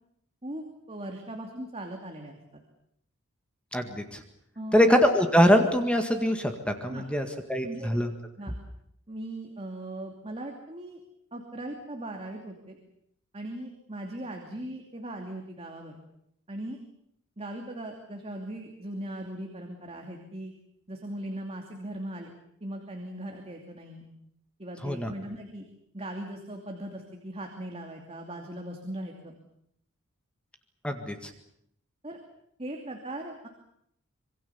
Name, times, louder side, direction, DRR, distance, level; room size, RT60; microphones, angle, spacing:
voice 1, 0.4-2.6 4.6-5.0 6.9-7.1 7.6-7.9 8.4-8.5 9.1-11.0 11.3-12.8 13.3-16.0 16.5-16.8 17.4-20.5 20.9-22.3 22.6-24.1 24.6-25.7 25.9-29.3 32.0-32.2 32.6-33.5, right 1 dB, 30° right, 2 dB, 2.8 m, -39 dB
voice 2, 3.7-4.2 4.7-8.1 24.8-25.1 30.8-31.3, equal, 5° left, 5 dB, 1.9 m, -23 dB
26.0 x 23.0 x 7.1 m, 0.72 s
head